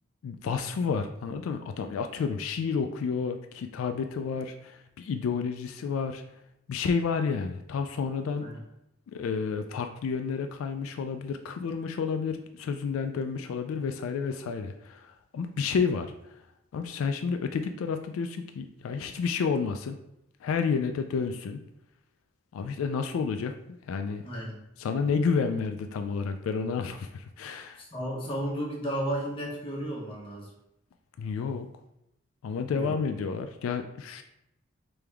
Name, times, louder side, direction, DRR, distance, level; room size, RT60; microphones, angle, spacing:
voice 1, 0.2-6.2 6.7-8.5 9.1-16.4 16.7-20.0 20.4-21.6 22.5-24.2 24.8-27.8 31.2-31.7 32.4-34.2, left 5 dB, 85° left, 7 dB, 0.3 m, -30 dB
voice 2, 24.2-24.6 27.8-30.5 32.7-32.9, right 1 dB, 25° left, -3 dB, 1.1 m, -33 dB
3.4 x 3.4 x 3.4 m, 0.84 s
head